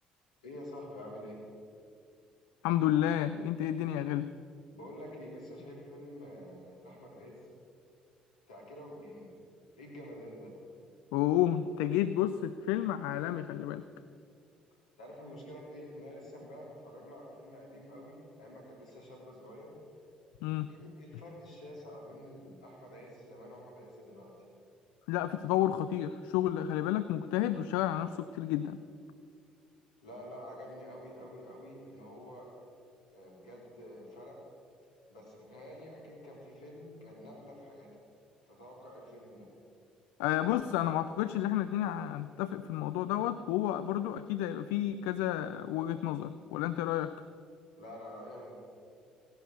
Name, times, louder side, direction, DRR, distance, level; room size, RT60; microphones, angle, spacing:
voice 1, 0.4-1.4 4.7-7.4 8.5-9.4 9.8-10.5 15.0-19.7 20.7-24.3 30.0-32.5 33.1-34.4 35.1-37.9 38.5-39.5 47.8-48.6, equal, 90° left, -3 dB, 3.6 m, -48 dB
voice 2, 2.6-4.3 11.1-13.9 20.4-20.7 25.1-28.8 40.2-47.1, left 12 dB, 70° left, 13 dB, 0.4 m, -31 dB
16.5 x 10.5 x 6.4 m, 2.4 s
hypercardioid pair, 55°, 3 cm